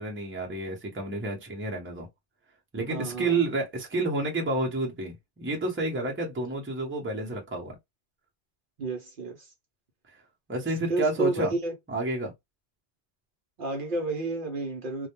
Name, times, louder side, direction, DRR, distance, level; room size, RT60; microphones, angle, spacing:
voice 1, 0.0-2.1 2.7-7.8 10.5-11.5 11.9-12.3, right 2 dB, 15° right, 0.6 m, -30 dB
voice 2, 2.9-3.4 8.8-9.5 10.9-11.7 13.6-15.1, right 3 dB, 60° right, 0.7 m, -31 dB
2.2 x 2.1 x 2.9 m
omnidirectional pair, 1.1 m